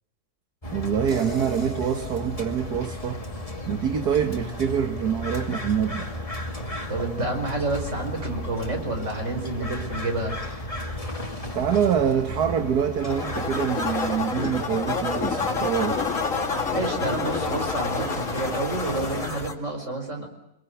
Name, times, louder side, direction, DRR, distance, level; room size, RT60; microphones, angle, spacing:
sound 1, 0.6-19.5, left 1 dB, 20° left, 2.4 m, -34 dB
voice 1, 0.7-3.2 3.7-6.1 11.5-16.0, right 8 dB, 75° right, 7 dB, 1.9 m, -25 dB
sound 2, 1.1-4.2, equal, 25° right, 3.8 m, -41 dB
voice 2, 6.9-10.4 16.7-20.3, right 2 dB, 45° right, 4 dB, 5.3 m, -29 dB
sound 3, 13.1-19.5, left 4 dB, 50° left, 2.6 m, -29 dB
25.5 x 22.0 x 8.4 m, 0.88 s
omnidirectional pair, 1.7 m